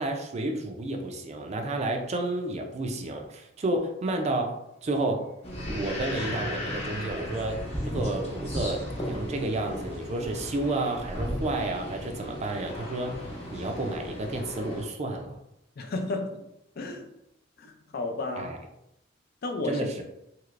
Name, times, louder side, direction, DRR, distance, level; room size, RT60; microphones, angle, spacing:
voice 1, 0.0-4.6 4.8-5.3 5.7-7.6 7.9-13.2 13.5-15.4 18.4-18.6 19.6-20.0, right 2 dB, 35° right, 4 dB, 0.4 m, -31 dB
sound 1, 4.7-12.9 13.1-13.2, left 1 dB, 90° left, 1.1 m, -48 dB
sound 2, 5.4-14.8, equal, 35° left, 0.8 m, -35 dB
voice 2, 15.8-16.4 16.8-17.1 17.6-18.5 19.4-20.0, left 2 dB, 55° left, 4 dB, 0.4 m, -32 dB
3.2 x 2.8 x 2.4 m, 0.84 s
head